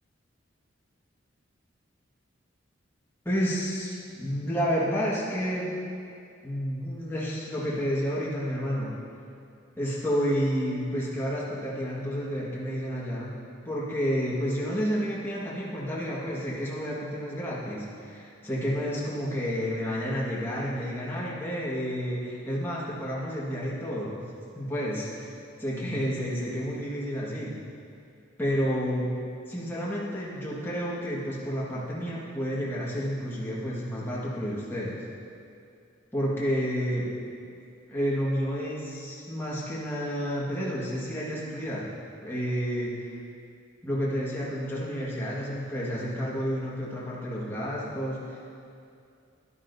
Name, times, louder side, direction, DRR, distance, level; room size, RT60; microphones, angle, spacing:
voice 1, 3.2-5.8 6.4-8.9 9.8-13.3 13.6-24.2 24.5-25.1 25.6-27.6 28.4-29.2 29.5-35.0 36.1-37.1 37.9-41.9 42.2-42.9 43.8-48.5, equal, 10° left, -7 dB, 1.6 m, -30 dB
12.5 x 11.5 x 2.7 m, 2.5 s
head